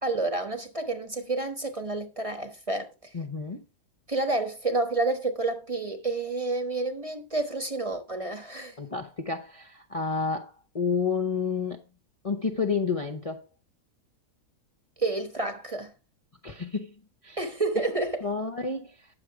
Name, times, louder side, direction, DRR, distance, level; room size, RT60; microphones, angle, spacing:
voice 1, 0.0-2.9 4.1-8.8 15.0-15.9 17.4-18.2, right 2 dB, 25° right, 1.2 m, -29 dB
voice 2, 3.1-3.6 8.8-11.8 12.2-13.4 16.4-16.9 17.2-17.4 18.2-19.1, left 5 dB, 30° left, 0.8 m, -30 dB
9.9 x 6.7 x 4.8 m
omnidirectional pair, 1.6 m